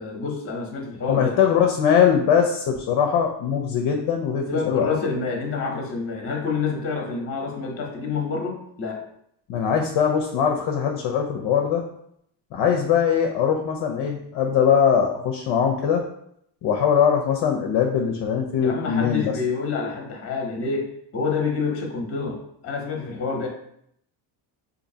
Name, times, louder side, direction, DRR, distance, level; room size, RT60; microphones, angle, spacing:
voice 1, 0.0-1.4 4.5-9.0 18.6-23.5, left 4 dB, 30° left, 1 dB, 0.9 m, -28 dB
voice 2, 1.0-4.9 9.5-11.8 12.5-16.0 16.6-19.4, left 7 dB, 55° left, 3 dB, 0.6 m, -21 dB
3.9 x 2.7 x 2.7 m, 0.71 s
cardioid pair, 105°, 48 cm